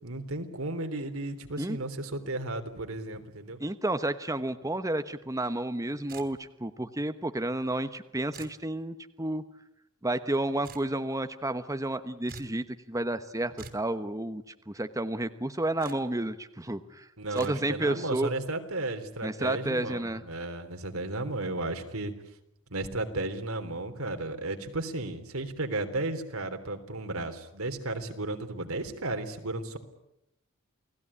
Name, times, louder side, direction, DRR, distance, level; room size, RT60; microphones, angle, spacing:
voice 1, 0.0-3.6 17.2-22.1 22.7-29.8, right 2 dB, 80° right, 7 dB, 3.4 m, -34 dB
voice 2, 3.6-9.4 10.0-18.3 19.2-20.2, right 1 dB, 15° right, 10 dB, 1.1 m, -31 dB
sound 1, 6.1-6.6 8.3-8.6 10.6-10.9 12.3-12.6 13.6-13.9 15.8-16.0 17.4-17.5, right 4 dB, 45° right, 3.1 m, -46 dB
29.5 x 19.0 x 9.9 m, 0.84 s
head